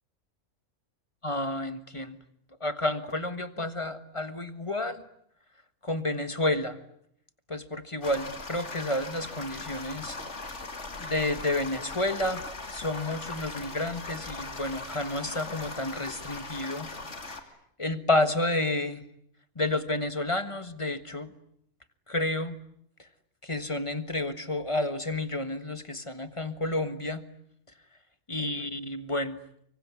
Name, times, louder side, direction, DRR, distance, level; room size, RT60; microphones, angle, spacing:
voice 1, 1.2-2.2 2.6-5.0 5.8-6.8 7.5-10.2 11.0-12.4 12.7-16.9 17.2-17.4 17.8-19.0 19.5-21.3 22.1-22.6 23.0-23.1 23.4-27.2 28.3-29.4, left 2 dB, 20° left, 11 dB, 1.5 m, -30 dB
sound 1, 8.0-17.4, left 3 dB, 55° left, 2.8 m, -39 dB
25.0 x 24.5 x 9.6 m, 0.71 s
omnidirectional pair, 1.5 m